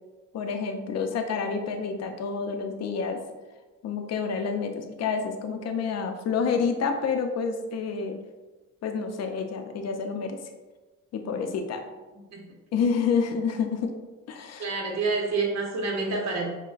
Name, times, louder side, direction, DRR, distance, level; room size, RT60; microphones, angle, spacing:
voice 1, 0.3-3.2 3.8-8.2 8.8-10.4 11.1-11.8 12.7-13.9 14.3-14.6, left 5 dB, 60° left, 5 dB, 0.6 m, -28 dB
voice 2, 14.6-16.5, right 3 dB, 60° right, 0 dB, 0.9 m, -28 dB
5.6 x 2.2 x 2.4 m, 1.2 s
cardioid pair, 90°, 30 cm